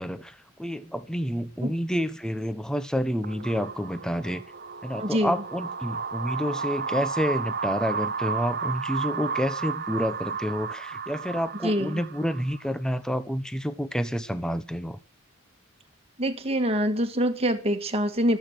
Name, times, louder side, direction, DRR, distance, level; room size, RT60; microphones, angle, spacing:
voice 1, 0.0-4.4 4.8-15.0, equal, 5° left, 1.1 m, -29 dB
sound 1, 3.2-12.7, right 5 dB, 45° right, 0.8 m, -33 dB
voice 2, 5.0-5.4 11.6-12.0 16.2-18.4, equal, 30° right, 1.8 m, -25 dB
24.5 x 8.9 x 6.2 m
head